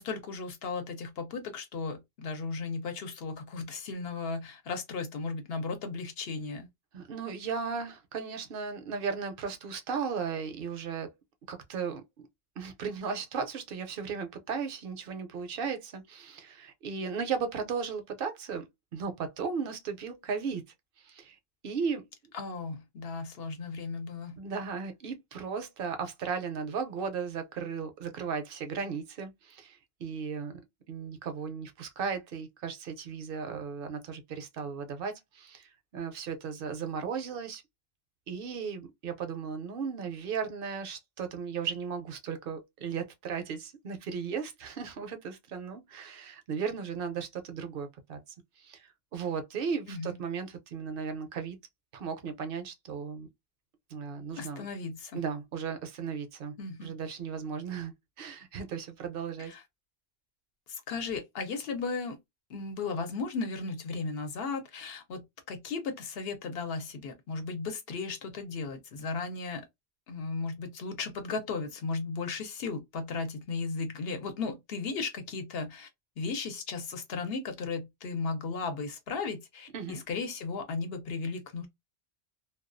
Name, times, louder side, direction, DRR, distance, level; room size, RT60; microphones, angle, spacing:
voice 1, 0.0-6.7 22.3-24.4 49.9-50.2 54.4-55.2 56.6-56.9 59.4-59.6 60.7-62.2 62.5-69.6 70.1-75.9 76.2-81.7, left 4 dB, 70° left, 0.9 m, -36 dB
voice 2, 6.9-11.1 11.5-12.0 12.6-18.7 18.9-20.6 21.0-21.4 21.6-22.0 24.4-30.6 30.9-37.6 38.3-48.2 48.6-51.6 51.9-53.3 53.9-54.7 55.1-56.5 56.8-59.5 79.7-80.0, right 6 dB, 65° right, 0.7 m, -36 dB
2.3 x 2.2 x 2.4 m
omnidirectional pair, 1.1 m